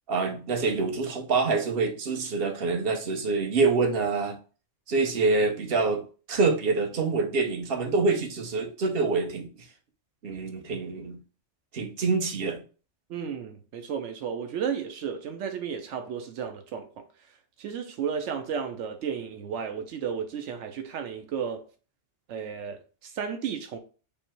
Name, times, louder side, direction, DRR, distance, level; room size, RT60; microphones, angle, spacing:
voice 1, 0.1-4.4 4.9-6.0 6.3-9.5 10.2-11.2 11.7-12.6, right 4 dB, 55° right, 1.0 m, -26 dB
voice 2, 13.1-17.0 17.6-21.6 22.3-23.8, right 7 dB, 85° right, 0.9 m, -33 dB
5.4 x 2.1 x 4.4 m
omnidirectional pair, 1.2 m